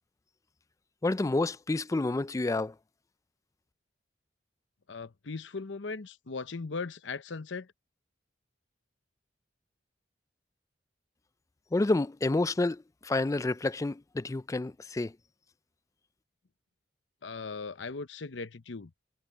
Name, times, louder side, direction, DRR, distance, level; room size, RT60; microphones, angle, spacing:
voice 1, 1.0-2.7 11.7-15.1, left 2 dB, 15° left, 0.3 m, -29 dB
voice 2, 4.9-7.7 17.2-18.9, left 4 dB, 85° left, 0.8 m, -38 dB
head